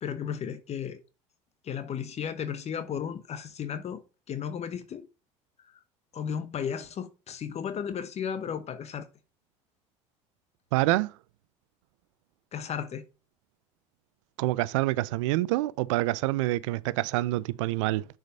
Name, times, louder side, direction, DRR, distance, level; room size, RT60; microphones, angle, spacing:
voice 1, 0.0-1.0 1.6-4.0 4.3-5.1 6.1-9.1 12.5-13.0, left 8 dB, 45° left, 0.9 m, -34 dB
voice 2, 10.7-11.1 14.4-18.1, right 18 dB, 80° right, 0.4 m, -26 dB
6.6 x 4.9 x 5.4 m
hypercardioid pair, 75°, 16 cm